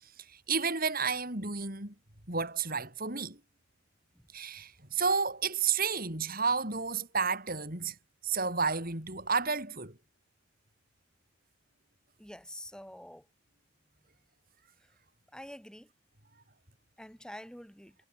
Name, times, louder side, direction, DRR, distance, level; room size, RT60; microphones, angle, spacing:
voice 1, 0.0-1.9 2.3-3.4 4.3-7.9 8.2-9.9, right 5 dB, 40° right, 5.3 m, -31 dB
voice 2, 12.2-13.3 14.8-14.9 15.3-15.9 17.0-18.0, left 1 dB, 5° left, 5.7 m, -47 dB
head